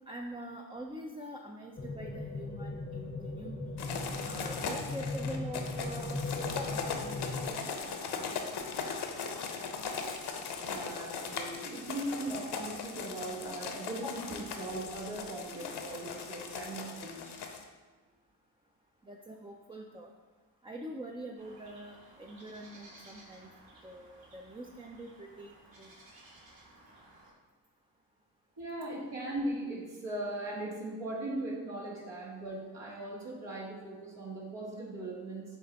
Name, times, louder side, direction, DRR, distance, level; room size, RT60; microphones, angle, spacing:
voice 1, 0.1-3.8 4.2-8.6 10.0-10.2 14.0-14.2 19.0-20.1 20.6-23.5 23.8-25.9, right 1 dB, 10° right, 1 dB, 0.5 m, -45 dB
sound 1, 1.8-7.5, left 2 dB, 20° left, 0.7 m, -38 dB
sound 2, 3.8-17.6, left 5 dB, 60° left, 0.9 m, -39 dB
voice 2, 10.7-17.3 28.6-35.4, right 1 dB, 75° right, -5 dB, 1.8 m, -39 dB
sound 3, 21.4-27.3, right 1 dB, 55° right, 1.9 m, -57 dB
7.1 x 3.3 x 4.0 m, 1.3 s
supercardioid pair, 55°, 45 cm